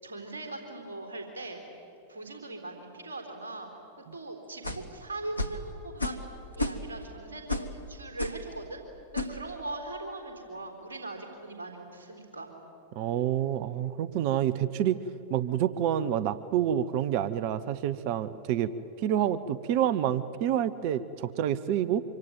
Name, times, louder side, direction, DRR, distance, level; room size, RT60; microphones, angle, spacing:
voice 1, 0.0-1.6 2.1-3.7 4.0-6.3 6.6-8.8 9.1-12.5, right 2 dB, 70° right, 4 dB, 4.0 m, -40 dB
sound 1, 4.6-4.9 5.4-5.6 6.0-6.3 6.5-7.0 7.5-7.7 8.2-8.4 9.1-9.4, left 2 dB, 85° left, 1.4 m, -32 dB
voice 2, 12.9-15.0 15.3-18.7 19.0-22.0, right 10 dB, 45° right, 16 dB, 0.8 m, -28 dB
25.5 x 25.0 x 9.1 m, 2.9 s
figure-of-eight pair, 90°, 0 cm